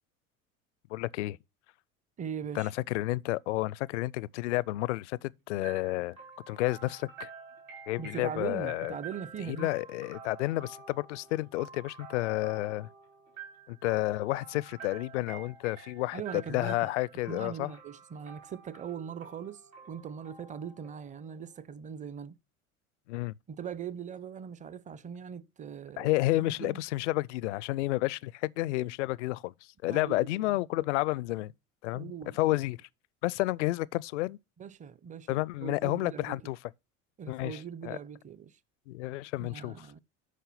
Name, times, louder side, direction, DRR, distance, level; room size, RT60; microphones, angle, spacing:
voice 1, 0.9-1.4 2.6-6.2 6.5-7.3 7.9-8.9 9.5-12.9 13.7-17.7 23.1-23.3 26.0-29.5 29.8-31.5 31.8-32.8 33.2-34.4 35.3-36.6 37.3-37.6 37.8-38.0 38.9-39.7, left 18 dB, 65° left, 0.5 m, -31 dB
voice 2, 2.2-2.7 8.0-9.7 16.1-16.9 17.3-19.6 19.9-22.4 23.5-26.8 29.9-30.6 31.9-32.4 34.6-36.5 37.2-38.5 39.4-40.0, right 7 dB, 20° right, 0.6 m, -41 dB
sound 1, 5.6-21.4, right 5 dB, 85° right, 3.8 m, -50 dB
8.4 x 5.7 x 5.7 m
figure-of-eight pair, 70°, 40 cm